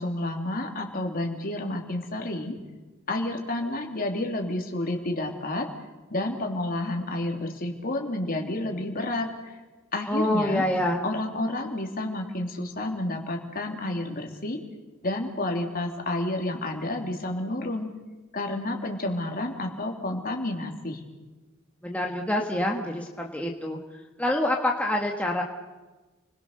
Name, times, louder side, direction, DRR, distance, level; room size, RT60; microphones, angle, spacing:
voice 1, 0.0-2.6 3.1-5.7 6.1-9.6 9.9-10.6 11.0-14.6 15.0-17.9 18.3-21.0, left 1 dB, 45° left, 2 dB, 3.2 m, -30 dB
voice 2, 10.1-11.0 21.8-23.8 24.2-25.4, left 1 dB, 5° left, 0 dB, 1.6 m, -26 dB
29.5 x 21.5 x 6.7 m, 1.2 s
head